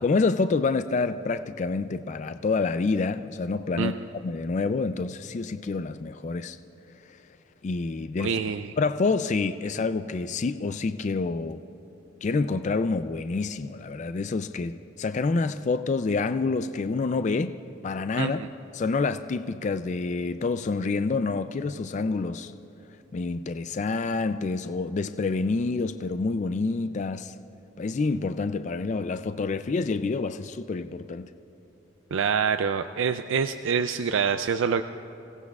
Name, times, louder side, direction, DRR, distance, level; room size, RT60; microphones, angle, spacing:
voice 1, 0.0-4.0 4.2-6.6 7.6-8.4 8.8-11.6 12.2-17.5 17.8-18.4 18.7-22.5 23.1-27.3 27.8-31.3, left 4 dB, 35° left, 10 dB, 0.3 m, -27 dB
voice 2, 8.2-8.7 18.2-18.5 32.1-34.8, right 6 dB, 75° right, 9 dB, 0.4 m, -26 dB
27.5 x 17.0 x 2.4 m, 2.8 s
head